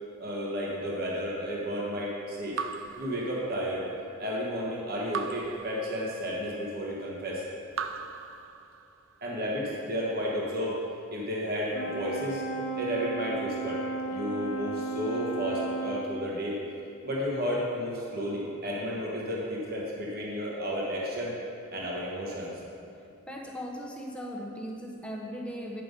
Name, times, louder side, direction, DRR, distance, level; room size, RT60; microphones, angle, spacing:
voice 1, 0.2-2.6 3.0-3.9 4.2-7.4 9.2-10.8 11.1-12.4 12.8-13.8 14.1-16.6 17.0-21.3 21.7-22.5, equal, 45° right, -4 dB, 1.3 m, -32 dB
Raindrop / Drip, 2.6-3.9 5.1-6.5 7.7-9.1, right 6 dB, 65° right, 0.4 m, -39 dB
Brass instrument, 11.7-16.1, right 2 dB, 60° left, 0.7 m, -34 dB
voice 2, 23.3-25.8, equal, 5° left, -1 dB, 0.8 m, -38 dB
8.7 x 5.8 x 5.2 m, 2.6 s
head